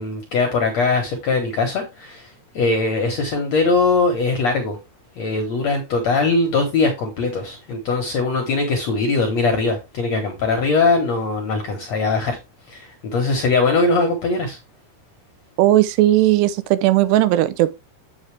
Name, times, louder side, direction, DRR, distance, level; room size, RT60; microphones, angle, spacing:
voice 1, 0.0-2.3 2.5-4.8 5.2-12.4 12.7-14.6, left 3 dB, 65° left, 1.7 m, -21 dB
voice 2, 15.6-17.7, right 14 dB, 85° right, 2.8 m, -16 dB
8.2 x 6.5 x 3.3 m
omnidirectional pair, 4.8 m